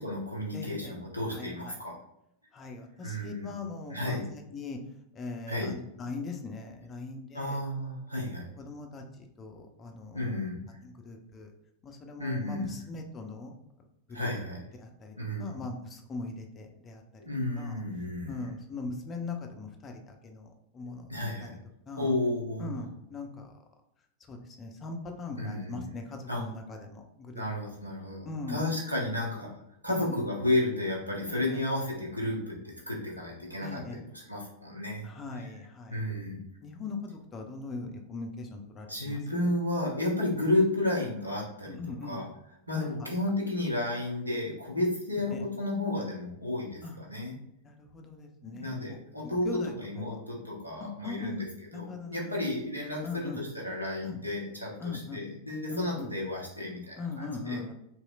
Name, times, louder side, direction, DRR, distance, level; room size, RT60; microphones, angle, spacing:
voice 1, 0.0-1.9 3.0-3.5 3.9-4.2 5.5-5.7 7.3-8.5 10.1-10.7 12.2-12.7 14.1-14.6 15.1-15.6 17.2-18.4 21.1-21.5 22.0-22.6 25.4-25.8 26.3-26.4 27.3-29.5 29.8-35.1 35.4-35.5 35.9-36.4 38.9-41.8 42.0-42.3 42.7-47.3 48.5-49.5 49.8-51.5 51.7-57.6, left 1 dB, 85° right, -3 dB, 0.8 m, -32 dB
voice 2, 0.5-0.9 1.3-1.8 2.5-4.8 5.1-7.6 8.1-10.4 10.8-11.5 11.8-13.5 14.1-14.3 14.8-17.0 17.6-17.7 18.3-21.5 21.9-22.1 22.6-23.6 24.3-27.4 28.2-28.6 29.9-30.2 31.3-31.6 33.6-34.0 35.0-36.0 36.6-39.5 41.7-42.3 42.7-43.1 45.2-45.4 46.8-47.0 47.6-49.0 49.2-50.2 50.8-51.4 51.7-52.4 53.0-53.4 54.0-54.2 54.8-55.2 55.7-56.1 57.0-57.7, left 3 dB, 25° left, 4 dB, 0.5 m, -40 dB
3.0 x 2.9 x 2.3 m, 0.78 s
figure-of-eight pair, 90°, 0 cm